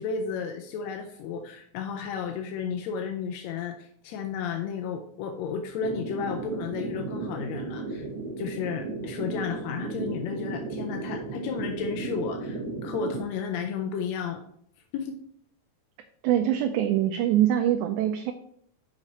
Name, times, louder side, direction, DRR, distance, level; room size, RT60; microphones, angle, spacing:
voice 1, 0.0-8.1 8.4-14.4 14.9-15.2, left 6 dB, 75° left, 4 dB, 1.7 m, -33 dB
sound 1, 5.8-13.2, right 3 dB, 50° right, 2.1 m, -35 dB
voice 2, 16.2-18.3, right 11 dB, 80° right, 5 dB, 2.0 m, -23 dB
6.0 x 5.7 x 4.1 m, 0.66 s
omnidirectional pair, 3.6 m